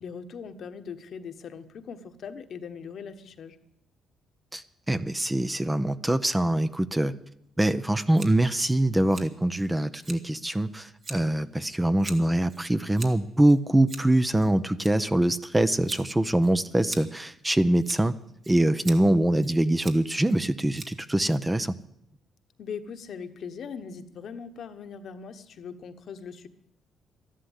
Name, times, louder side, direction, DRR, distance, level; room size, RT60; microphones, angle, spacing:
voice 1, 0.0-3.6 22.6-26.5, left 6 dB, 60° left, 8 dB, 1.3 m, -40 dB
voice 2, 4.5-7.1 7.6-18.1 18.5-21.8, right 1 dB, 10° right, 12 dB, 0.7 m, -24 dB
Scissors, 8.1-21.8, right 3 dB, 40° right, 1.9 m, -46 dB
13.0 x 11.5 x 8.2 m, 0.79 s
cardioid pair, 90°, 0 cm